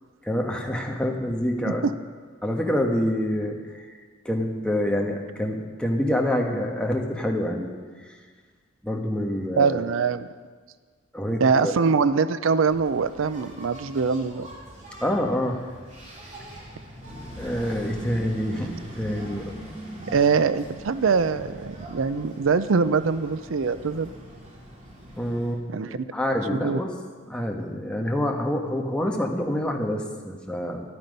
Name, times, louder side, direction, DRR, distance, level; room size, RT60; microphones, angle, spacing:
voice 1, 0.2-1.9 2.4-4.0 4.2-7.7 8.1-8.2 8.8-9.8 11.1-11.7 15.0-15.6 17.4-19.4 25.1-26.9 27.3-30.8, left 1 dB, 5° left, 1 dB, 1.3 m, -27 dB
voice 2, 9.5-10.3 11.4-14.5 20.1-24.1 25.7-26.0 26.5-26.8, right 5 dB, 85° right, 14 dB, 0.5 m, -23 dB
Engine, 12.6-25.6, right 1 dB, 35° right, 2.4 m, -42 dB
13.0 x 12.0 x 5.3 m, 1.5 s
head